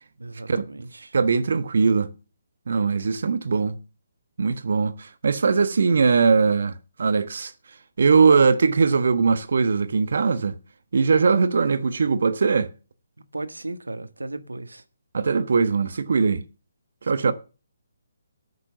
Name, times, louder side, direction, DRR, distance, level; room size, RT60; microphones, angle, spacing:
voice 1, 0.2-1.1 13.3-14.8 17.2-17.3, right 2 dB, 85° right, 1.6 m, -35 dB
voice 2, 1.1-2.1 2.7-3.8 4.4-7.5 8.0-10.6 10.9-12.7 15.1-16.4 17.0-17.3, right 5 dB, 65° right, 1.2 m, -20 dB
13.5 x 6.7 x 6.9 m
figure-of-eight pair, 145°, 0 cm